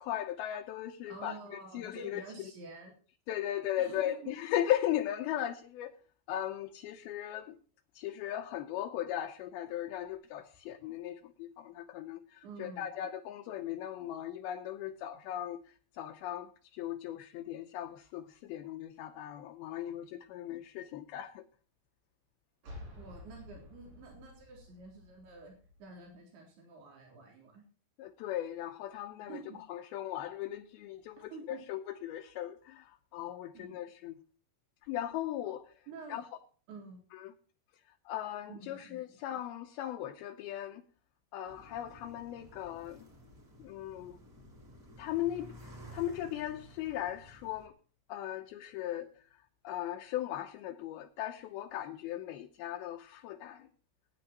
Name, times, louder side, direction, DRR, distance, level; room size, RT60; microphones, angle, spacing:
voice 1, 0.0-2.2 3.3-6.0 6.3-7.6 8.0-21.5 28.0-29.4 29.7-34.2 34.9-35.7 36.1-36.2 37.1-37.3 38.1-40.8 41.3-43.1 43.6-44.2 45.0-47.7 48.1-49.1 49.6-53.7, left 12 dB, 80° left, 2.6 m, -38 dB
voice 2, 1.1-2.9 3.8-4.4 12.4-12.9 22.9-25.5 25.8-27.6 29.3-29.6 31.3-31.6 33.5-33.7 35.9-36.2 36.7-37.0 38.5-39.2, right 3 dB, 80° right, 5.6 m, -49 dB
sound 1, 22.6-26.1, left 1 dB, 60° right, 8.2 m, -51 dB
sound 2, 41.5-47.7, equal, 30° right, 1.9 m, -53 dB
21.0 x 9.6 x 2.9 m
omnidirectional pair, 4.6 m